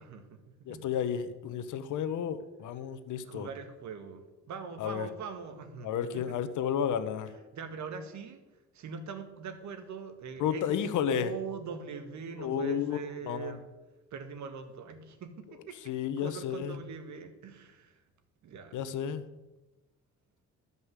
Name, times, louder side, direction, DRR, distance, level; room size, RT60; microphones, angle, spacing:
voice 1, 0.0-0.8 3.2-6.4 7.5-8.4 8.7-13.7 14.1-18.0 18.4-18.8, right 5 dB, 70° right, 8 dB, 1.8 m, -42 dB
voice 2, 0.7-3.5 4.8-5.1 5.8-7.3 10.4-11.3 12.4-13.0 13.2-13.6 15.9-16.8 18.7-19.2, left 8 dB, 80° left, 10 dB, 1.1 m, -32 dB
13.0 x 5.5 x 8.1 m, 1.1 s
cardioid pair, 90°, 30 cm